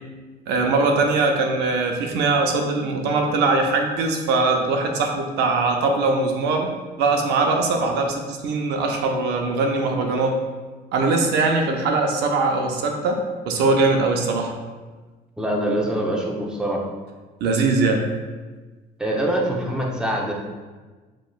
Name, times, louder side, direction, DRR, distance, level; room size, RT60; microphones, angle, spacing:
voice 1, 0.5-6.7 7.0-10.4 10.9-14.5 17.4-18.1, right 3 dB, 85° right, 3 dB, 0.6 m, -21 dB
voice 2, 15.4-16.8 19.0-20.3, right 1 dB, 5° right, -2 dB, 0.8 m, -24 dB
7.5 x 3.0 x 2.4 m, 1.3 s
cardioid pair, 110°, 17 cm